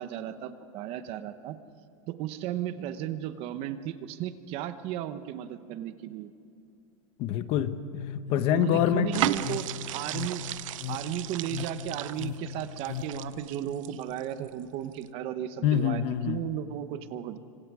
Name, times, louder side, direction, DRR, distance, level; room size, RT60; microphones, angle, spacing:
voice 1, 0.0-1.6 2.1-6.3 8.5-9.6 9.9-10.4 10.9-17.4, right 11 dB, 35° right, 11 dB, 1.0 m, -35 dB
voice 2, 7.2-9.2 15.6-16.4, left 10 dB, 35° left, 11 dB, 1.0 m, -26 dB
sound 1, 8.3-13.5, left 10 dB, 55° left, 0.9 m, -39 dB
sound 2, 9.1-14.5 14.9-15.1, right 13 dB, 75° right, 0.7 m, -35 dB
26.0 x 25.5 x 4.9 m, 2.6 s
supercardioid pair, 170°, 17 cm